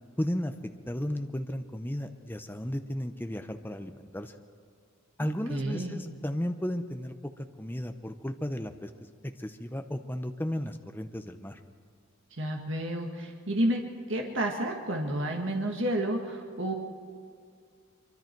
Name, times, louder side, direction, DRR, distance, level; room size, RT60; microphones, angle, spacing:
voice 1, 0.2-0.5 0.9-4.3 5.2-8.9 9.4-11.6, equal, 10° left, 7 dB, 0.7 m, -34 dB
voice 2, 5.2-6.0 12.4-13.8 14.1-16.7, right 1 dB, 60° right, 1 dB, 1.9 m, -30 dB
24.5 x 24.0 x 4.6 m, 2.2 s
head